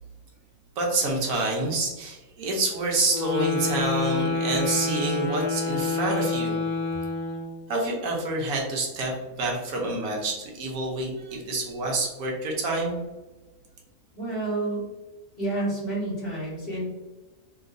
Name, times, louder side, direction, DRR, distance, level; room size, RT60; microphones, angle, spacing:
voice 1, 0.8-6.6 7.7-13.0, right 2 dB, 80° right, -1 dB, 1.3 m, -27 dB
sound 1, 3.1-7.6, left 3 dB, 80° left, 1.5 m, -28 dB
voice 2, 14.2-14.9 15.4-16.9, right 2 dB, 40° left, -6 dB, 1.5 m, -29 dB
3.2 x 2.8 x 2.5 m, 1.2 s
omnidirectional pair, 1.5 m